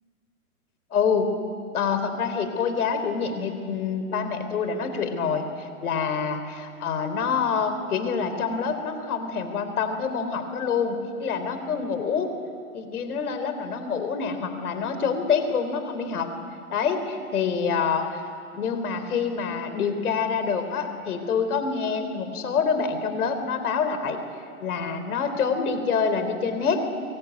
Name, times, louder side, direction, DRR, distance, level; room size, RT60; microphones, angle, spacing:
voice 1, 0.9-1.3 1.7-12.3 12.7-16.3 16.7-18.2 18.5-24.2 24.6-26.8, left 6 dB, 75° left, 8 dB, 3.8 m, -26 dB
24.0 x 21.5 x 9.5 m, 2.3 s
hypercardioid pair, 150°, 44 cm